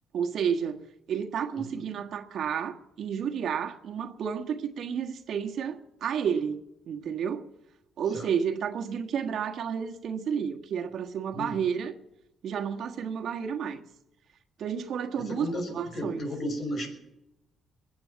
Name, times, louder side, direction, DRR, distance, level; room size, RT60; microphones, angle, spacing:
voice 1, 0.1-0.8 1.1-7.5 8.0-11.9 12.4-13.8 14.6-15.5 15.8-16.2, right 7 dB, 70° right, 1.5 m, -31 dB
voice 2, 1.6-1.9 8.0-8.3 11.3-11.7 15.2-16.9, equal, 50° left, 5.7 m, -35 dB
22.0 x 8.8 x 7.1 m
cardioid pair, 90°, 0 cm